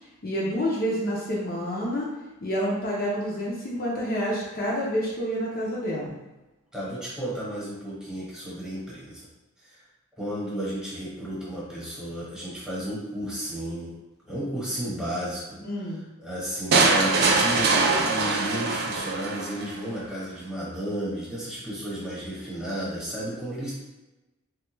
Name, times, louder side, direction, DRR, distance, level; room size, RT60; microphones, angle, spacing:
voice 1, 0.2-2.1 2.4-6.2 15.6-16.0, equal, 45° left, -5 dB, 0.6 m, -28 dB
voice 2, 6.7-9.3 9.6-9.8 10.2-13.9 14.2-15.6 16.2-23.7, equal, 5° right, -9 dB, 1.1 m, -33 dB
sound 1, 16.7-19.7, right 3 dB, 50° right, 0.4 m, -22 dB
3.3 x 2.3 x 3.0 m, 1.1 s
head